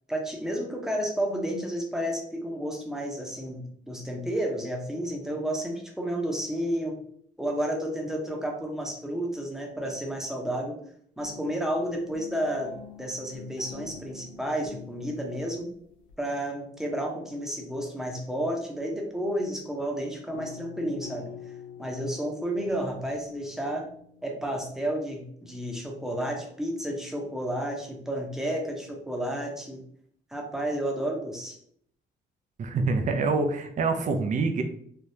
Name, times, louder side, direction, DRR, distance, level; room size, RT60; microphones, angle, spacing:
voice 1, 0.1-7.0 7.4-10.8 11.2-15.7 16.2-21.3 21.8-23.9 24.2-29.8 30.3-31.6, right 1 dB, ahead, 1 dB, 0.8 m, -31 dB
sound 1, 11.2-19.5 20.3-24.8, left 7 dB, 80° left, 0.7 m, -48 dB
voice 2, 32.6-34.6, right 4 dB, 40° right, 5 dB, 0.5 m, -26 dB
3.4 x 2.3 x 2.7 m, 0.65 s
cardioid pair, 90°, 20 cm